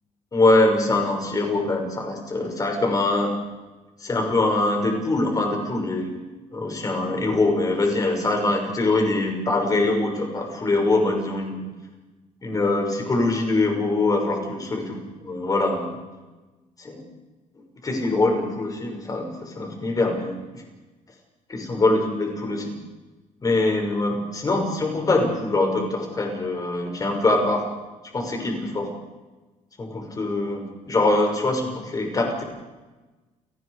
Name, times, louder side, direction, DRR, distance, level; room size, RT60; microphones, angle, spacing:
voice 1, 0.3-3.3 4.0-6.1 6.5-11.5 12.4-14.8 15.2-16.0 16.8-17.0 17.8-20.6 21.5-22.7 23.4-27.7 28.1-28.9 29.8-32.4, left 2 dB, 25° left, 2 dB, 5.9 m, -23 dB
30.0 x 19.0 x 4.9 m, 1.2 s
cardioid pair, 140°, 14 cm